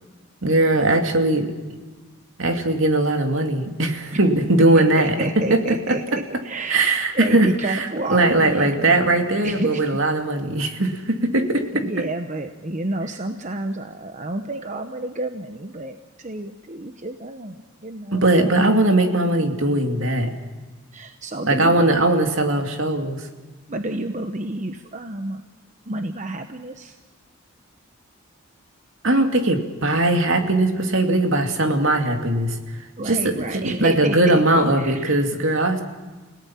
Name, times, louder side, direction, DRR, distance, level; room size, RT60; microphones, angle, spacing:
voice 1, 0.4-1.5 2.4-5.1 5.5-5.6 5.9-6.0 6.7-11.8 18.1-20.3 21.5-23.3 29.0-32.6 33.1-35.8, right 2 dB, 65° right, 4 dB, 2.6 m, -20 dB
voice 2, 4.6-9.1 9.4-10.0 11.7-18.6 20.9-21.9 23.7-25.4 25.8-27.0 33.0-35.3, right 2 dB, 35° right, 7 dB, 1.0 m, -30 dB
30.0 x 18.0 x 5.8 m, 1.3 s
head